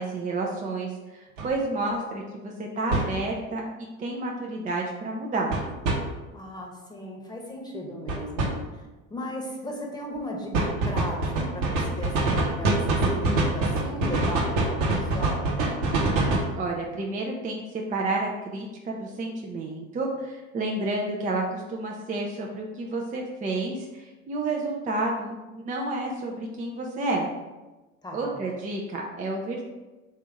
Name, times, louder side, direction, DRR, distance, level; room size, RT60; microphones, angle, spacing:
voice 1, 0.0-5.6 16.6-17.6 17.9-27.3 28.1-29.6, right 2 dB, 20° right, -1 dB, 0.5 m, -30 dB
sound 1, 1.4-1.5 2.9-3.1 5.5-6.0 8.1-8.5 10.5-16.5, right 2 dB, 65° right, 1.0 m, -24 dB
voice 2, 6.3-8.8 9.1-12.8 13.1-15.6 28.0-28.4, left 1 dB, 10° left, -1 dB, 1.0 m, -37 dB
3.5 x 2.8 x 4.5 m, 1.1 s
hypercardioid pair, 75°, 40 cm